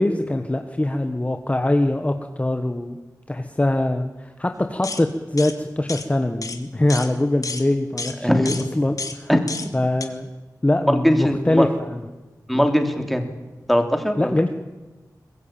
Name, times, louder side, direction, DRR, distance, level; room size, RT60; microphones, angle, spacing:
voice 1, 0.0-3.0 3.3-9.3 9.7-10.3 10.6-12.0 14.2-14.5, left 1 dB, 20° left, 6 dB, 1.5 m, -23 dB
sound 1, 4.8-5.0 5.4-5.5 5.9-6.1 6.4-6.6 6.9-7.1 7.4-7.7 8.0-8.2 8.5-8.7 9.0-9.2 9.5-9.7 10.0-10.1, left 3 dB, 60° left, 2.2 m, -31 dB
voice 2, 8.2-8.6 9.3-9.7 10.9-11.7 12.5-13.3 13.7-14.4, equal, ahead, 5 dB, 3.1 m, -20 dB
23.5 x 20.5 x 8.9 m, 1.2 s
wide cardioid pair, 95°, 7 cm